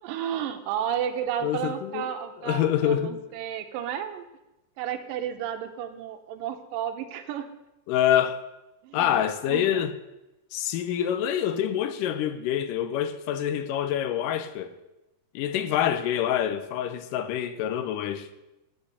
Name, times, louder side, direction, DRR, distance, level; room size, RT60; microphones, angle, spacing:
voice 1, 0.0-4.3 4.8-7.5 8.8-9.2 9.5-9.8, right 9 dB, 90° right, 2.5 m, -32 dB
voice 2, 1.4-2.1 2.4-3.2 7.9-8.4 8.9-9.9 10.5-14.7 15.4-18.3, left 10 dB, 85° left, 2.2 m, -26 dB
8.4 x 8.2 x 6.7 m
omnidirectional pair, 3.9 m